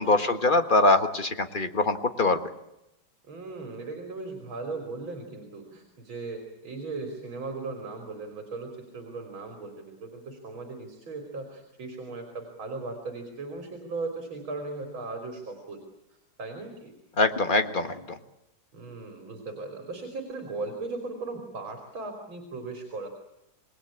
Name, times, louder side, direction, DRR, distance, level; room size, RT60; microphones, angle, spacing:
voice 1, 0.0-2.4 17.2-18.2, left 2 dB, 25° left, 8 dB, 1.4 m, -23 dB
voice 2, 3.3-15.8 16.4-16.9 18.7-23.1, right 3 dB, 75° right, 4 dB, 4.1 m, -37 dB
27.0 x 20.5 x 8.7 m, 0.88 s
omnidirectional pair, 2.2 m